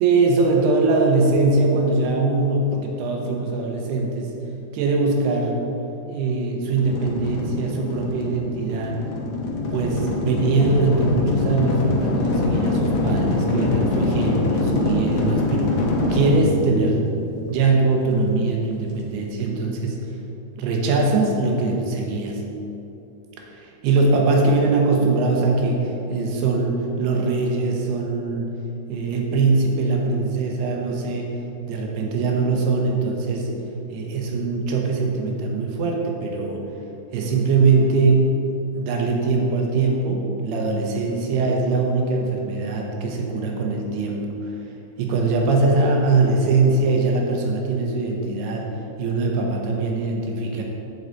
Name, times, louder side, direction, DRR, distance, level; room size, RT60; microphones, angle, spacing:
voice 1, 0.0-4.3 4.7-5.6 6.1-9.0 9.7-17.1 17.5-20.0 20.6-22.4 23.5-28.5 28.9-31.3 31.7-33.5 33.9-36.6 37.1-38.3 38.7-44.5 45.0-48.7 49.0-50.6, right 3 dB, 85° right, 0 dB, 3.1 m, -22 dB
sound 1, 6.8-17.8, left 2 dB, 85° left, 3.2 m, -24 dB
8.4 x 7.7 x 4.0 m, 2.9 s
omnidirectional pair, 4.6 m